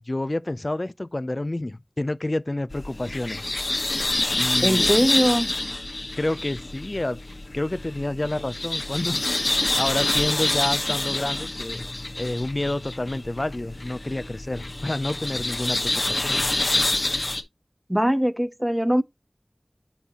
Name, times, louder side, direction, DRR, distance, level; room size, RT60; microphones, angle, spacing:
voice 1, 0.0-3.4 4.4-5.0 6.2-7.2 7.5-9.2 9.8-11.9 12.2-16.4, left 1 dB, 50° left, 0.4 m, -29 dB
sound 1, 2.7-17.4, left 2 dB, 75° left, 1.0 m, -27 dB
voice 2, 4.6-5.5 17.9-19.0, equal, 10° right, 0.5 m, -21 dB
8.6 x 5.4 x 2.8 m
wide cardioid pair, 45°, 0 cm